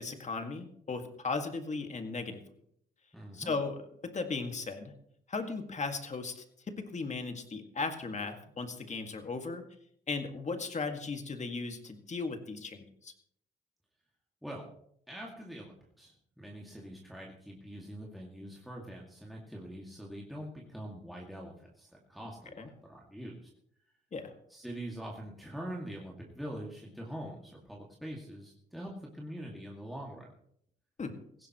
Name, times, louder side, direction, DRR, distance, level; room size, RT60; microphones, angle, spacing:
voice 1, 0.0-2.4 3.3-3.8 4.0-4.9 5.3-9.6 10.1-13.1 22.6-22.7 24.1-24.3 31.0-31.1, left 4 dB, 35° left, 6 dB, 2.0 m, -36 dB
voice 2, 3.1-3.5 14.4-14.7 15.1-23.5 24.5-30.3, right 1 dB, ahead, -3 dB, 2.2 m, -44 dB
17.0 x 15.5 x 3.1 m, 0.69 s
cardioid pair, 90°, 20 cm